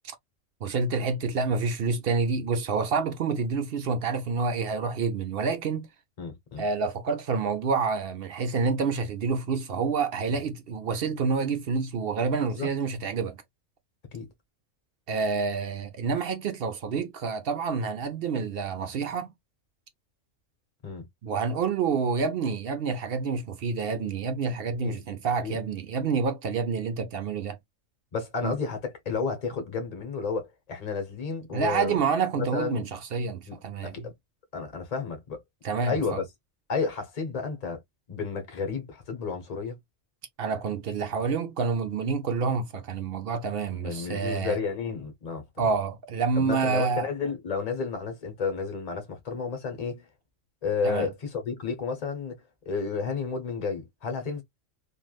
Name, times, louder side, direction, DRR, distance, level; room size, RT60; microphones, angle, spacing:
voice 1, 0.6-5.9 6.6-13.4 15.1-19.3 21.2-27.6 28.4-28.5 31.5-34.0 35.6-36.2 40.4-44.6 45.6-47.1 50.8-51.1, right 5 dB, 60° right, 0.7 m, -28 dB
voice 2, 6.2-6.7 12.5-12.7 14.1-14.3 20.8-21.0 24.8-25.0 25.4-25.6 28.1-32.0 32.4-32.8 33.5-33.6 33.8-34.1 34.5-35.4 35.8-36.2 36.7-37.8 38.1-39.8 43.7-45.7 46.4-50.1 50.6-52.4 52.6-54.4, left 5 dB, 35° left, 1.0 m, -31 dB
3.2 x 2.4 x 2.3 m
omnidirectional pair, 1.4 m